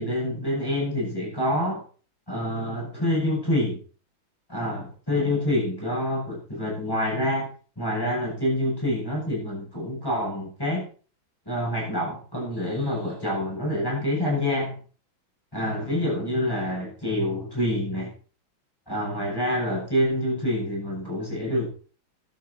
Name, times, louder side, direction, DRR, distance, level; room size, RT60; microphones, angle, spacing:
voice 1, 0.0-1.8 2.3-3.8 4.5-7.5 7.8-10.8 11.5-14.8 15.5-18.1 18.9-21.7, left 1 dB, 10° left, -4 dB, 8.0 m, -27 dB
14.0 x 12.0 x 4.3 m, 0.39 s
omnidirectional pair, 2.2 m